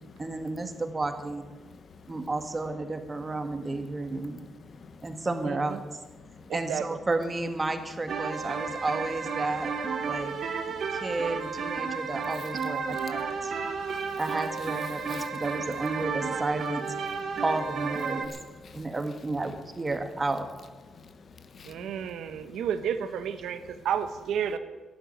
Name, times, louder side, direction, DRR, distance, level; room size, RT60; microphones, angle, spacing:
voice 1, 0.2-1.5 2.1-4.5 5.0-5.8 6.5-9.7 10.0-10.3 10.9-13.5 14.2-16.9 17.4-18.3 18.7-20.5, right 2 dB, 25° right, 7 dB, 1.8 m, -32 dB
voice 2, 4.7-5.0 6.2-6.5 10.7-11.0 13.3-14.2 15.1-15.3 17.2-17.4 18.3-18.8 20.9-22.0 22.4-22.5, left 5 dB, 45° left, 10 dB, 1.2 m, -50 dB
voice 3, 6.5-6.8 21.6-24.6, right 8 dB, 80° right, 10 dB, 1.3 m, -31 dB
sound 1, 8.1-18.3, right 5 dB, 55° right, 1.9 m, -32 dB
13.0 x 11.0 x 9.6 m, 1.3 s
cardioid pair, 110°, 0 cm